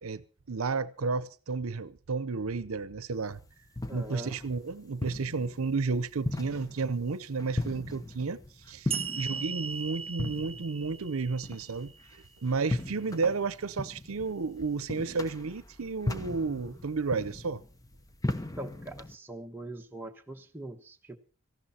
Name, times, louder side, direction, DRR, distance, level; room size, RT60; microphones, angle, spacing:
voice 1, 0.0-3.4 3.9-8.4 8.7-11.9 12.4-17.6, right 4 dB, 80° right, 0.7 m, -32 dB
sound 1, 3.3-19.2, left 2 dB, 15° left, 0.9 m, -38 dB
voice 2, 3.9-4.4 18.3-21.2, right 1 dB, 10° right, 1.2 m, -42 dB
sound 2, 8.9-12.3, right 6 dB, 30° right, 0.7 m, -38 dB
18.0 x 15.0 x 4.2 m
head